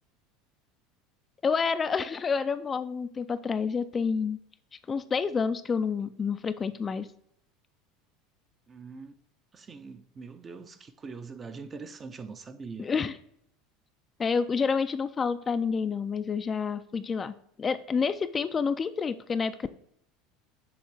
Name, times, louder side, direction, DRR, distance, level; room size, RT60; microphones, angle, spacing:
voice 1, 1.4-4.4 4.9-7.1 12.8-13.1 14.2-17.3 17.6-19.7, left 5 dB, 30° left, 0.4 m, -28 dB
voice 2, 8.7-9.2 9.5-12.9, right 4 dB, 30° right, 0.6 m, -43 dB
7.0 x 3.3 x 4.7 m
hypercardioid pair, 90°, 0 cm